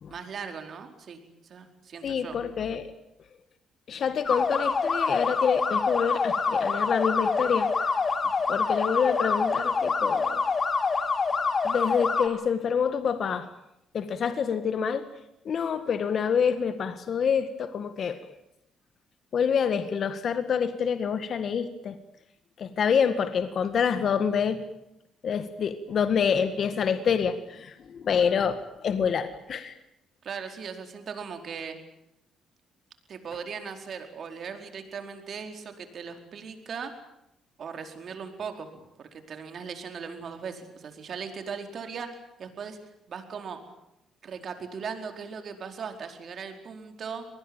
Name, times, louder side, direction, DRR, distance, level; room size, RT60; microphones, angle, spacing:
voice 1, 0.1-2.4 30.2-31.8 33.1-36.9 37.6-38.7 39.0-42.8 43.1-43.6 44.2-47.3, right 6 dB, 55° right, 6 dB, 4.5 m, -38 dB
voice 2, 2.0-2.9 3.9-7.9 8.5-10.5 11.6-13.5 13.9-15.1 15.5-18.2 19.3-22.0 22.6-24.6 25.2-29.8, left 7 dB, 55° left, 10 dB, 1.8 m, -27 dB
sound 1, 4.2-12.3, left 4 dB, 40° left, 2.8 m, -26 dB
25.5 x 20.0 x 9.0 m, 0.83 s
cardioid pair, 90°, 0 cm